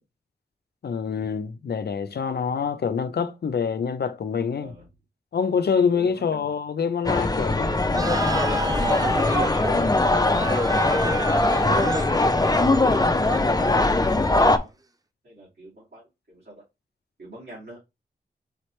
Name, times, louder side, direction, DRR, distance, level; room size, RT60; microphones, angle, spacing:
voice 1, 0.8-4.7 5.3-7.7, left 6 dB, 65° left, 0.6 m, -26 dB
voice 2, 5.9-6.5 15.2-16.6 17.2-17.8, right 1 dB, 70° right, 2.7 m, -45 dB
sound 1, 7.0-14.6, left 2 dB, 20° left, 0.7 m, -21 dB
sound 2, 7.9-14.4, right 2 dB, 20° right, 0.6 m, -31 dB
4.9 x 3.0 x 3.2 m
cardioid pair, 40°, 18 cm